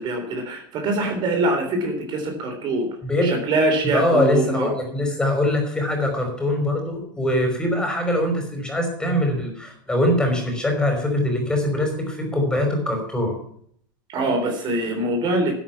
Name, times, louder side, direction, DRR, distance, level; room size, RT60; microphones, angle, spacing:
voice 1, 0.0-2.9 3.2-4.7 14.1-15.5, right 2 dB, 40° right, 5 dB, 3.5 m, -23 dB
voice 2, 3.0-3.3 3.8-13.3, left 1 dB, 5° left, 3 dB, 5.2 m, -22 dB
12.5 x 10.0 x 6.0 m, 0.63 s
supercardioid pair, 135°, 11 cm